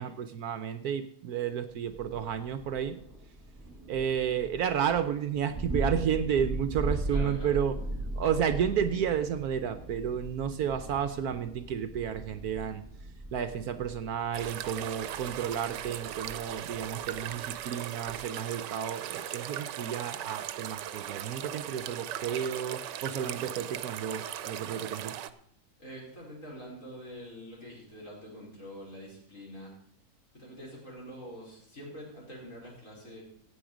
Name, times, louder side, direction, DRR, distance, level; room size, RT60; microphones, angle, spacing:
voice 1, 0.0-3.0 3.9-7.8 8.1-12.8 13.3-25.1, right 8 dB, 70° right, 10 dB, 1.1 m, -31 dB
Thunder, 1.9-17.7, right 1 dB, 10° right, 2.0 m, -39 dB
voice 2, 7.1-7.7 25.8-29.7 30.3-33.2, equal, 45° left, -4 dB, 5.4 m, -45 dB
sound 1, 14.3-25.3, right 11 dB, 85° right, 1.3 m, -38 dB
15.0 x 8.6 x 5.0 m, 0.67 s
omnidirectional pair, 1.8 m